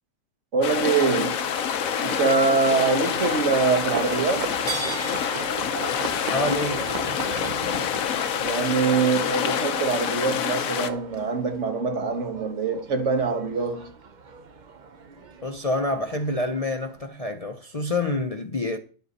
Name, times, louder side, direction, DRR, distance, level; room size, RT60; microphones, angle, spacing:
voice 1, 0.5-1.5 2.0-4.6 8.4-13.9, right 4 dB, 60° right, 1.6 m, -24 dB
sound 1, 0.6-10.9, left 9 dB, 80° left, 1.2 m, -27 dB
Livestock farm animals working animals, 0.6-17.1, right 5 dB, 40° right, 0.8 m, -37 dB
voice 2, 6.3-6.9 15.4-18.8, left 2 dB, 35° left, 0.7 m, -27 dB
11.5 x 7.7 x 4.2 m
omnidirectional pair, 1.4 m